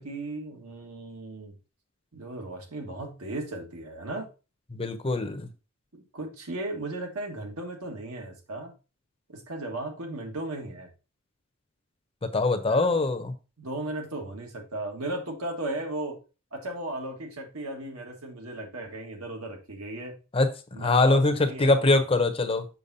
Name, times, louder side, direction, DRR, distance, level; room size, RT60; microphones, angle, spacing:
voice 1, 0.0-1.6 2.1-4.3 5.9-8.8 9.3-10.9 12.7-13.0 13.6-16.2 16.5-20.1 20.7-22.0, right 2 dB, 75° right, 1.6 m, -36 dB
voice 2, 4.7-5.5 12.3-13.3 20.3-20.5 20.8-22.7, left 2 dB, 25° left, 0.6 m, -23 dB
6.8 x 5.9 x 2.7 m
head